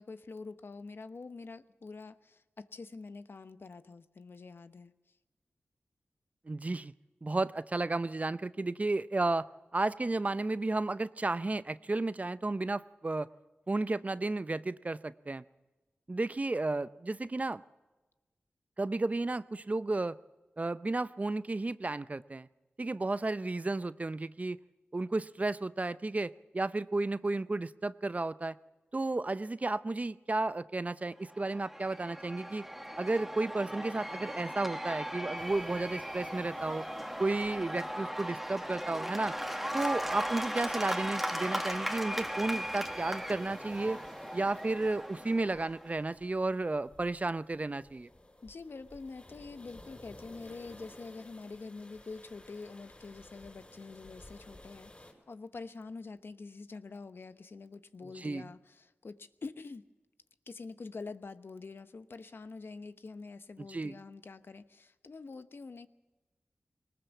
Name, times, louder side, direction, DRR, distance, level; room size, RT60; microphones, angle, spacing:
voice 1, 0.0-4.9 48.4-59.8 60.5-65.9, left 4 dB, 65° left, 11 dB, 0.9 m, -46 dB
voice 2, 6.5-6.9 7.2-9.5 9.7-13.3 13.7-15.4 16.1-17.6 18.8-20.2 20.6-22.5 22.8-24.6 24.9-28.5 28.9-32.7 33.0-36.9 37.2-39.3 39.7-44.0 44.3-48.1 58.2-58.4 63.7-64.0, right 2 dB, 35° right, 15 dB, 0.6 m, -33 dB
Cheering / Applause / Crowd, 31.3-46.0, equal, 5° right, 1.5 m, -38 dB
sound 1, 35.4-55.1, left 1 dB, 30° left, 6.2 m, -56 dB
20.0 x 19.5 x 7.2 m, 1.1 s
cardioid pair, 45°, 4 cm